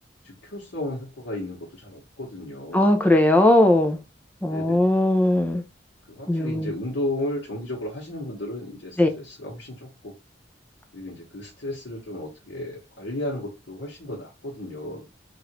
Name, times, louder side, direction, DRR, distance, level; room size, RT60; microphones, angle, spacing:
voice 1, 0.2-2.9 4.5-5.0 6.1-10.1 10.9-15.0, left 1 dB, 85° left, 1.0 m, -34 dB
voice 2, 2.7-4.0 4.4-5.6 6.3-6.7 9.0-9.1, left 1 dB, 10° left, 0.5 m, -19 dB
3.2 x 2.5 x 2.9 m
head